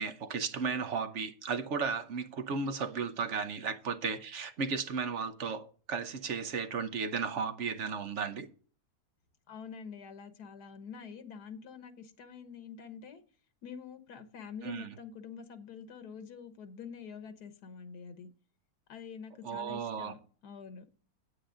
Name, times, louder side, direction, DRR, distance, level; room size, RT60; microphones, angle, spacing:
voice 1, 0.0-8.5 14.6-14.9 19.4-20.1, right 5 dB, 55° right, 1.1 m, -34 dB
voice 2, 9.5-13.2 13.6-18.3 18.9-20.8, left 6 dB, 90° left, 1.7 m, -46 dB
9.6 x 8.6 x 3.8 m
omnidirectional pair, 1.7 m